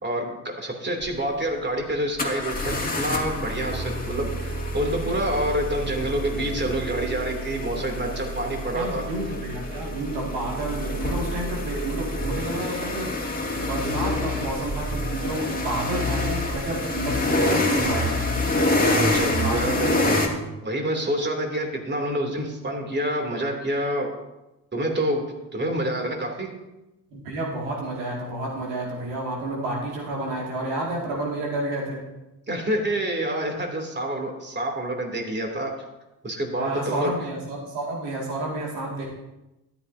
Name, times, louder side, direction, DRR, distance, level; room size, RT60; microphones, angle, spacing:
voice 1, 0.0-9.0 19.0-19.9 20.6-24.1 24.7-25.2 25.5-26.5 32.5-35.7 36.2-37.1, right 1 dB, 20° right, 2 dB, 2.8 m, -27 dB
sound 1, 1.0-1.1 2.2-20.3, left 1 dB, 15° left, 2.2 m, -27 dB
voice 2, 8.7-18.3 19.4-19.9 20.3-20.6 27.1-32.0 36.6-39.1, right 2 dB, 75° right, -2 dB, 2.4 m, -30 dB
13.0 x 11.5 x 2.7 m, 0.99 s
hypercardioid pair, 45°, 50 cm